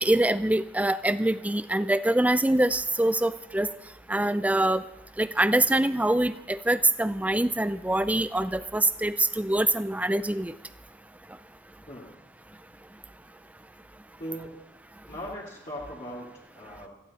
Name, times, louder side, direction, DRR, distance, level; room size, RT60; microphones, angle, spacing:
voice 1, 0.0-3.7 4.1-4.8 5.2-10.5, right 1 dB, 10° right, 13 dB, 0.5 m, -24 dB
voice 2, 14.2-14.8 15.1-16.9, equal, 40° left, -6 dB, 2.6 m, -39 dB
17.5 x 15.5 x 4.3 m, 0.91 s
head